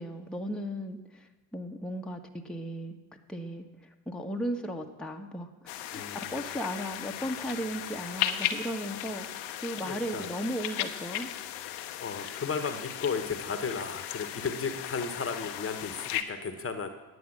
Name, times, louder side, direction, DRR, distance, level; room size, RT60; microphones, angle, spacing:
voice 1, 0.0-3.0 3.3-5.5 5.9-9.3 9.6-11.3 12.2-12.4, equal, ahead, 2 dB, 1.2 m, -36 dB
sound 1, 5.7-16.2, left 11 dB, 65° left, 0.9 m, -36 dB
voice 2, 5.9-6.3 9.8-10.3 12.0-16.9, left 5 dB, 30° left, 8 dB, 1.2 m, -34 dB
9.5 x 7.9 x 7.3 m, 1.2 s
hypercardioid pair, 50°, 44 cm